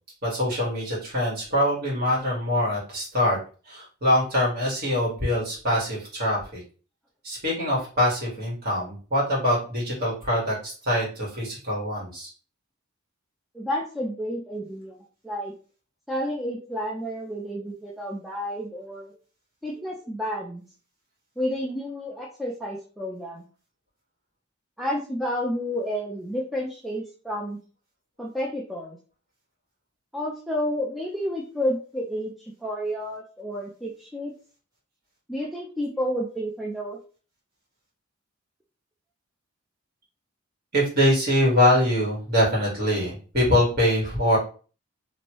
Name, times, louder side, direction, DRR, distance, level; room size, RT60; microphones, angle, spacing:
voice 1, 0.2-3.4 3.7-6.6 7.2-12.3 40.7-44.4, left 1 dB, 45° right, -5 dB, 1.7 m, -24 dB
voice 2, 13.5-15.0 15.2-15.5 16.1-19.1 19.6-20.6 21.4-23.4 24.8-27.6 28.2-29.0 30.1-34.3 35.3-37.0, equal, ahead, -3 dB, 0.4 m, -30 dB
3.0 x 2.6 x 3.0 m, 0.38 s
head